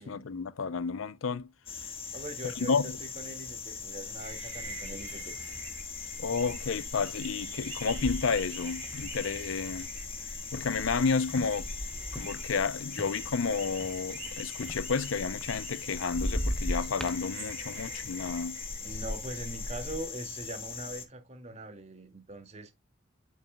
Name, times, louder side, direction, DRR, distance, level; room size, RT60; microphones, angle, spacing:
voice 1, 0.0-1.5 2.7-2.9 6.2-9.9 10.5-11.7 12.1-18.6, left 5 dB, 85° left, 0.6 m, -31 dB
sound 1, 1.7-21.1, left 6 dB, 30° left, 1.5 m, -41 dB
voice 2, 2.1-5.5 18.8-22.7, right 1 dB, 35° right, 2.1 m, -42 dB
sound 2, 4.2-20.1, right 1 dB, 20° right, 4.8 m, -44 dB
sound 3, 4.8-4.9 5.3-5.8 6.3-6.5 7.4-12.7 13.0-15.8 16.1-17.2, equal, 5° left, 0.8 m, -37 dB
8.6 x 6.7 x 2.2 m
head